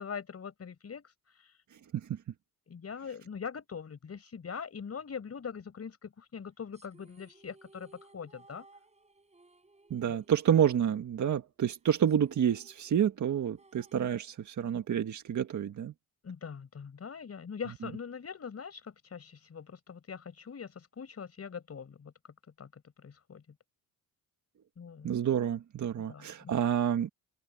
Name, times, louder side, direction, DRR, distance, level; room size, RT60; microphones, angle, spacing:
voice 1, 0.0-1.5 2.7-8.7 10.1-10.2 16.2-22.1 22.6-23.4 24.8-25.1 26.0-26.5, left 6 dB, 40° left, 5.6 m, -42 dB
sound 1, 6.7-11.4 11.7-11.8 12.1-14.7, right 3 dB, 20° right, 7.7 m, -61 dB
voice 2, 9.9-15.9 25.0-27.1, right 9 dB, 50° right, 1.7 m, -29 dB
cardioid pair, 105°, 36 cm